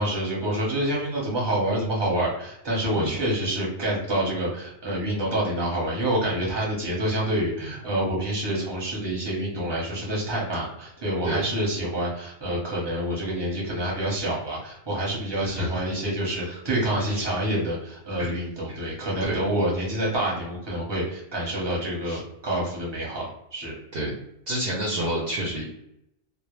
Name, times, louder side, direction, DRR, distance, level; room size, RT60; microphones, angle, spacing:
voice 1, 0.0-23.7, right 1 dB, 25° right, -4 dB, 0.8 m, -27 dB
voice 2, 15.4-15.7 16.3-16.6 17.1-17.2 18.2-18.3 18.7-18.8 19.2-19.4 22.0-22.2 23.9-24.1 24.5-25.7, right 1 dB, 60° right, -4 dB, 0.7 m, -29 dB
2.1 x 2.0 x 3.0 m, 0.78 s
omnidirectional pair, 1.2 m